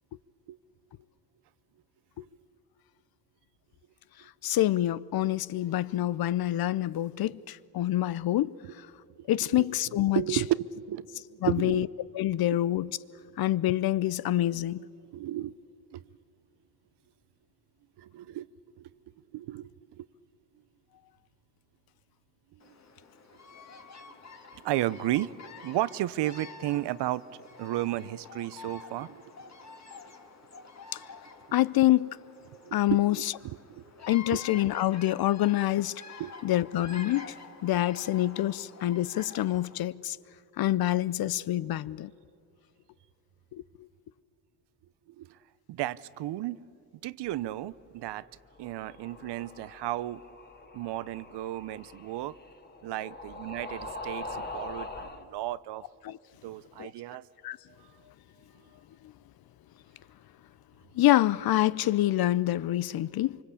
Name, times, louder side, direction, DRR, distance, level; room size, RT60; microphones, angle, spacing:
voice 1, 4.4-8.5 9.3-10.2 11.4-11.9 12.1-12.9 13.4-14.8 31.5-32.2 32.7-33.2 34.1-36.0 36.4-37.3 37.6-40.2 40.6-42.1 43.5-43.6 56.0-56.2 56.8-56.9 57.4-57.6 60.9-63.4, left 14 dB, 55° left, 0.7 m, -26 dB
voice 2, 9.6-11.8 15.1-15.5 15.9-16.0 18.0-18.5 18.8-18.9 19.3-20.1 22.5-22.8 24.6-25.4 25.6-29.3 32.6-32.8 33.4-33.8 34.3-34.4 36.2-36.3 45.1-45.4 45.7-46.6 47.0-48.3 48.6-50.2 50.7-52.4 52.8-55.8 56.4-57.3 57.8-57.9, right 14 dB, 70° right, 0.8 m, -33 dB
Bird vocalization bird call bird song, 22.6-39.9, left 4 dB, 40° left, 2.2 m, -48 dB
sound 1, 48.5-55.2, left 2 dB, 25° left, 2.1 m, -43 dB
25.0 x 24.5 x 8.4 m
supercardioid pair, 75°, 43 cm